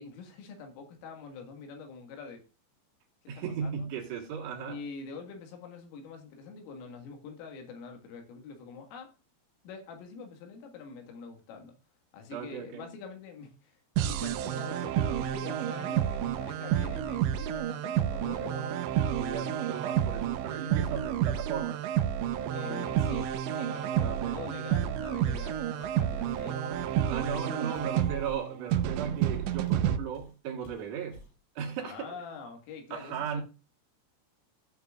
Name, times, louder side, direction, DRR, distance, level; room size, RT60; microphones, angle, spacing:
voice 1, 0.0-2.4 3.3-3.9 4.7-9.1 9.6-11.8 12.1-19.6 20.7-20.8 22.5-26.7 31.8-33.4, left 5 dB, 75° left, 4.3 m, -45 dB
voice 2, 3.3-4.8 12.3-12.9 19.2-21.8 23.9-24.4 27.0-31.2 31.5-32.1 32.9-33.4, right 7 dB, 65° right, 3.3 m, -36 dB
sound 1, 14.0-30.0, right 10 dB, 80° right, 2.6 m, -30 dB
Walk footsteps, 25.3-25.5 25.8-29.9 30.1-30.4 30.6-31.4, left 2 dB, 50° left, 5.3 m, -52 dB
15.0 x 6.9 x 2.4 m
omnidirectional pair, 5.9 m